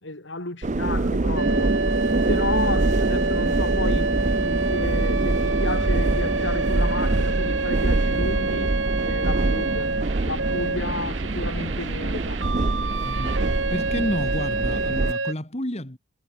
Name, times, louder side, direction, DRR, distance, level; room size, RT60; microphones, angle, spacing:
voice 1, 0.0-1.8 2.3-8.8 9.0-10.0 10.2-12.4, left 2 dB, 65° left, 3.6 m, -32 dB
sound 1, 0.6-15.1, right 2 dB, 35° right, 0.6 m, -24 dB
sound 2, 1.4-15.3, right 3 dB, 70° right, 4.7 m, -28 dB
voice 2, 13.0-13.4 13.7-16.0, left 1 dB, 35° left, 3.2 m, -30 dB
head